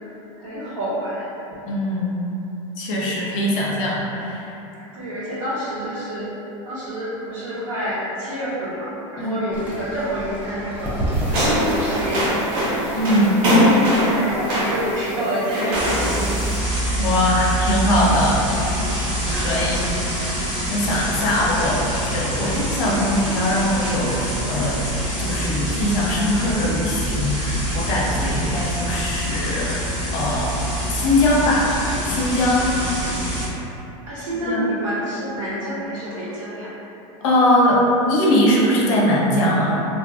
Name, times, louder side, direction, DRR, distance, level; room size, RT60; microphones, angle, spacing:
voice 1, 0.0-1.3 4.7-6.3 6.6-11.0 11.4-12.7 14.0-16.4 32.5-33.1 34.0-36.7, equal, 75° right, -12 dB, 1.4 m, -28 dB
voice 2, 1.6-2.2 2.8-4.5 9.2-9.3 12.9-13.4 17.0-18.4 19.3-24.9 25.2-30.6 30.9-31.7 32.0-32.6 34.4-34.6 37.2-39.8, left 1 dB, 65° left, -4 dB, 0.7 m, -21 dB
Fowl / Bird, 9.5-14.9, right 1 dB, 10° right, 0.6 m, -29 dB
sound 1, 11.1-16.6, equal, 90° right, 1.0 m, -21 dB
sound 2, 15.7-33.5, equal, 35° right, 1.5 m, -25 dB
2.6 x 2.5 x 2.4 m, 3.0 s
supercardioid pair, 120°, 17 cm